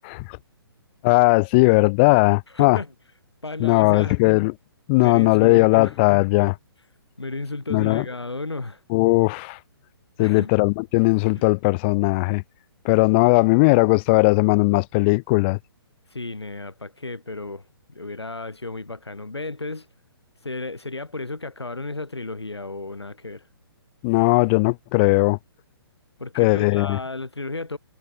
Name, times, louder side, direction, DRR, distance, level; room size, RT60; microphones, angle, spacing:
voice 1, 0.0-0.4 1.0-2.8 3.6-4.5 4.9-6.6 7.7-8.0 8.9-9.6 10.2-12.4 12.8-15.6 24.0-25.4 26.4-27.0, left 28 dB, 25° left, 0.6 m, -18 dB
voice 2, 2.5-2.9 3.4-4.2 5.0-6.0 7.2-8.8 10.2-10.6 11.4-11.5 16.1-17.6 17.9-19.9 20.4-23.5 26.2-27.8, left 2 dB, 85° left, 6.2 m, -33 dB
figure-of-eight pair, 130°, 13 cm